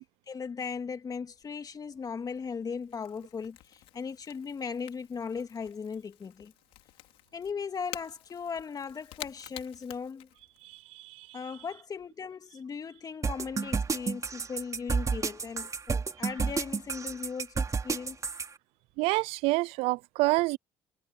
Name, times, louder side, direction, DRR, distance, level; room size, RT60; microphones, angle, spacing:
voice 1, 0.3-3.6 3.9-6.5 7.3-10.3 11.3-18.2, left 6 dB, 40° left, 2.2 m, -38 dB
Crackle / Crack, 1.3-10.8, left 16 dB, 80° left, 5.4 m, -50 dB
voice 2, 10.6-11.4 19.0-20.6, right 22 dB, 80° right, 0.4 m, -28 dB
sound 1, 13.2-18.5, right 5 dB, 35° right, 2.9 m, -30 dB
supercardioid pair, 75°, 10 cm